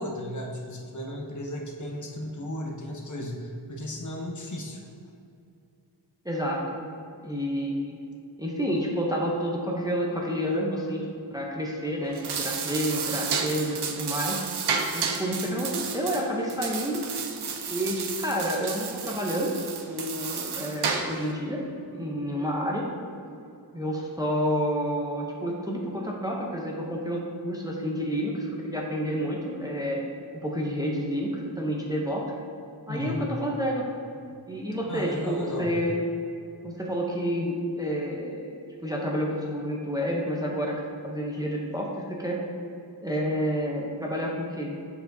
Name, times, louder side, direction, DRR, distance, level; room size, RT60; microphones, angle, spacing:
voice 1, 0.0-4.8 32.9-33.2 34.3-34.4 34.9-35.7, left 1 dB, 45° left, 0 dB, 0.9 m, -35 dB
voice 2, 6.2-6.8 7.2-8.0 8.4-11.1 11.3-14.4 14.9-17.0 17.7-19.5 19.9-21.7 21.9-22.9 23.7-30.0 30.4-32.2 32.9-33.8 34.5-36.0 36.6-42.4 43.0-44.8, equal, 10° right, -2 dB, 0.6 m, -29 dB
sound 1, 12.0-21.3, right 6 dB, 75° right, 0.6 m, -32 dB
6.9 x 6.9 x 2.6 m, 2.5 s
wide cardioid pair, 155°, 41 cm